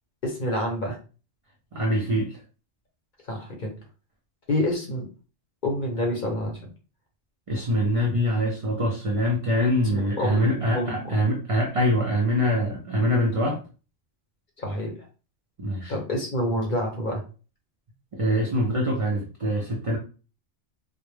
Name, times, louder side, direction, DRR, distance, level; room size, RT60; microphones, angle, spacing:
voice 1, 0.2-1.0 3.3-3.7 4.5-5.1 5.6-6.6 9.8-11.1 14.6-14.9 15.9-17.2, left 1 dB, 50° left, 0.8 m, -28 dB
voice 2, 1.7-2.4 7.5-13.6 15.6-15.9 18.1-20.0, equal, 55° right, 0.4 m, -24 dB
2.1 x 2.0 x 3.1 m
omnidirectional pair, 1.2 m